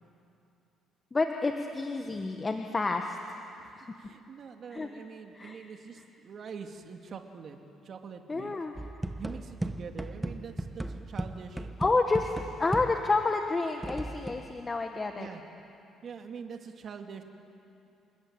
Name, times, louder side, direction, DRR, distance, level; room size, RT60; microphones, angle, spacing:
voice 1, 1.1-3.4 3.8-3.9 4.7-4.9 5.3-5.6 5.9-6.0 8.3-8.8 11.8-12.3 12.6-15.3, left 3 dB, 25° left, 4 dB, 1.4 m, -29 dB
voice 2, 3.6-7.6 7.8-8.5 9.2-11.7 15.2-15.4 16.0-17.2, right 6 dB, 50° right, 4 dB, 2.4 m, -44 dB
sound 1, 8.8-13.3 13.8-14.5, right 1 dB, 10° right, 1.2 m, -37 dB
29.0 x 20.5 x 9.1 m, 2.7 s
cardioid pair, 105°, 0 cm